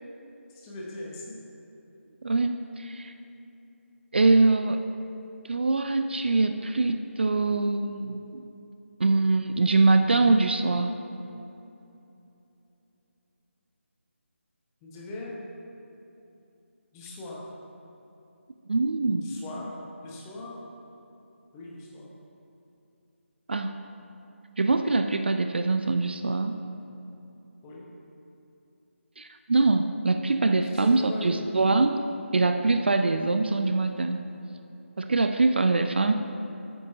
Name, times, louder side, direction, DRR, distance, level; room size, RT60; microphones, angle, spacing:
voice 1, 0.5-1.3 14.8-15.4 16.9-17.4 19.2-19.7 20.0-20.7 21.5-22.1 27.6-27.9 30.6-31.3, left 2 dB, 10° left, -4 dB, 0.9 m, -40 dB
voice 2, 2.2-3.1 4.1-4.8 5.5-8.4 9.0-10.9 18.7-19.3 23.5-23.7 24.6-26.6 29.2-32.0 32.3-34.2 35.0-36.1, right 3 dB, 50° right, 7 dB, 0.4 m, -23 dB
11.5 x 8.5 x 2.6 m, 2.9 s
figure-of-eight pair, 155°, 7 cm